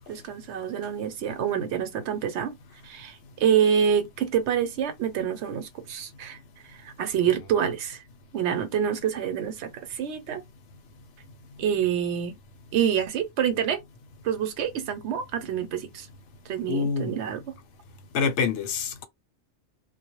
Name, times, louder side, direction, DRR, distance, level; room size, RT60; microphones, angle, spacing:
voice 1, 0.1-2.5 2.8-6.4 6.8-8.0 8.3-10.4 11.6-12.4 12.7-13.8 14.2-16.1 16.5-17.4, right 8 dB, 75° right, 0.9 m, -27 dB
voice 2, 16.7-17.1 18.1-19.1, left 5 dB, 80° left, 0.9 m, -26 dB
2.1 x 2.0 x 2.8 m
omnidirectional pair, 1.2 m